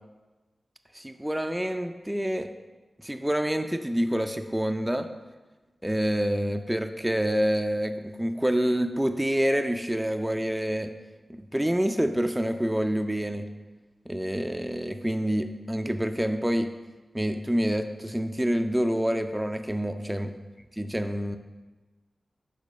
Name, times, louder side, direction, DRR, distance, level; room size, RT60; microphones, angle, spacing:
voice 1, 0.9-2.5 3.0-5.1 5.8-10.9 11.5-13.5 14.1-16.7 17.1-20.3 20.8-21.4, equal, 10° right, 6 dB, 0.4 m, -27 dB
5.1 x 3.7 x 5.4 m, 1.2 s
cardioid pair, 40°, 0 cm